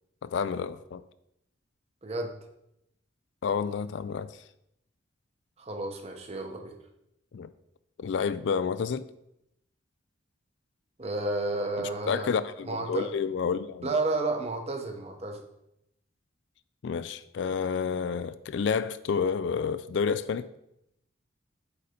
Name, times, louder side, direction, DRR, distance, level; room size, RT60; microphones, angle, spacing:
voice 1, 0.2-1.0 3.4-4.3 7.3-7.5 8.0-9.1 11.8-13.9 16.8-20.5, left 6 dB, 60° left, 0.3 m, -30 dB
voice 2, 2.0-2.4 5.6-6.7 11.0-12.3 12.6-13.1 13.8-15.4, right 2 dB, 30° right, 0.9 m, -31 dB
8.4 x 4.1 x 5.1 m
head